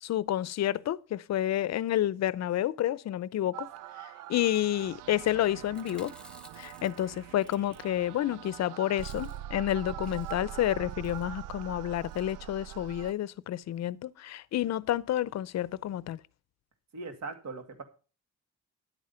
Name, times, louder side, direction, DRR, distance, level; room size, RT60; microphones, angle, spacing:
voice 1, 0.0-3.7 4.0-6.1 6.6-16.2, left 12 dB, 60° left, 0.6 m, -30 dB
sound 1, 3.5-13.1, right 13 dB, 80° right, 0.5 m, -43 dB
Chewing mastication, 5.6-8.3 8.6-8.7 8.9-9.6 9.9-10.6 11.0-11.3 12.0-12.3 12.9-13.2 13.5-13.6 13.8-13.9, left 2 dB, 5° left, 1.4 m, -56 dB
voice 2, 16.9-17.8, right 3 dB, 65° right, 2.5 m, -40 dB
11.0 x 8.8 x 5.5 m
cardioid pair, 135°, 31 cm